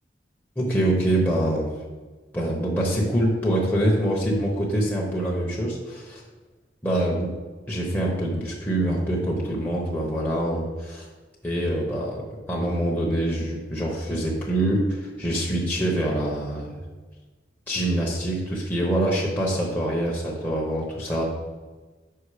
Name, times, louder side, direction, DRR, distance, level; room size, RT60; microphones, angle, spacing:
voice 1, 0.6-1.7 2.3-6.2 6.8-7.3 7.7-11.1 11.4-16.8 17.7-21.2, right 1 dB, 10° left, -4 dB, 0.9 m, -25 dB
5.6 x 5.6 x 4.9 m, 1.3 s
head